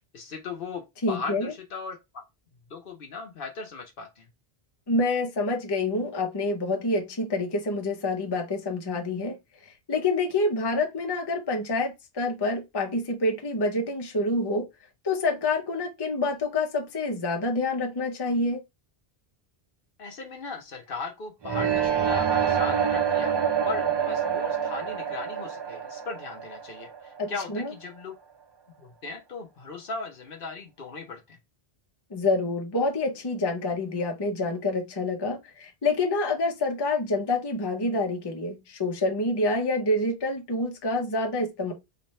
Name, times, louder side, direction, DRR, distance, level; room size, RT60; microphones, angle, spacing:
voice 1, 0.1-2.2 2.7-4.3 20.0-23.3 23.6-28.1 28.8-31.4, left 4 dB, 60° left, 0.9 m, -38 dB
voice 2, 1.0-1.5 4.9-9.4 9.6-14.6 15.0-18.6 27.2-27.7 32.1-41.7, left 2 dB, 25° left, 0.6 m, -27 dB
sound 1, 21.4-27.3, right 8 dB, 35° right, 0.4 m, -26 dB
3.3 x 2.5 x 4.1 m
omnidirectional pair, 1.1 m